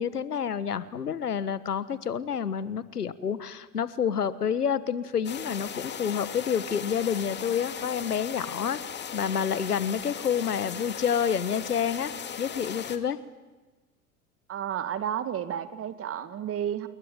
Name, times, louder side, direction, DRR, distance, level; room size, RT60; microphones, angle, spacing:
voice 1, 0.0-8.8 9.1-12.1 12.4-13.2, left 7 dB, 85° left, 15 dB, 1.4 m, -28 dB
sound 1, 5.2-13.0, left 7 dB, 25° left, 2.2 m, -38 dB
voice 2, 14.5-16.9, right 9 dB, 30° right, 11 dB, 2.1 m, -31 dB
29.0 x 21.0 x 9.1 m, 1.3 s
hypercardioid pair, 90°, 45 cm